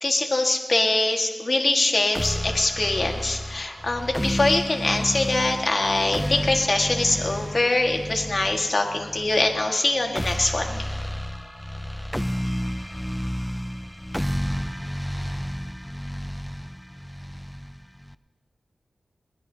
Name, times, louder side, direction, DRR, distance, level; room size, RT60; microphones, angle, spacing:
voice 1, 0.0-10.8, left 2 dB, 45° left, 3 dB, 1.6 m, -23 dB
sound 1, 2.1-18.1, equal, 5° left, 0.4 m, -31 dB
21.5 x 19.0 x 2.8 m, 1.4 s
wide cardioid pair, 90°, 0 cm